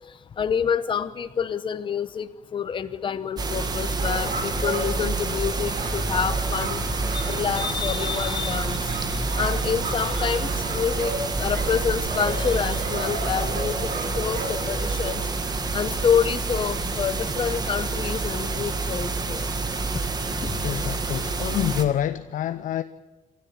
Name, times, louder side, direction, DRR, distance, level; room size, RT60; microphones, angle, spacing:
voice 1, 0.4-6.8 7.1-13.9 14.2-15.2 15.7-19.4 20.4-20.6, left 7 dB, 40° left, 0.9 m, -27 dB
sound 1, 3.4-21.8, right 3 dB, 30° right, 1.8 m, -28 dB
sound 2, 4.0-15.2, right 2 dB, 70° right, 5.0 m, -32 dB
voice 2, 20.6-22.8, left 11 dB, 75° left, 0.7 m, -27 dB
27.0 x 13.0 x 8.8 m
wide cardioid pair, 165°, 14 cm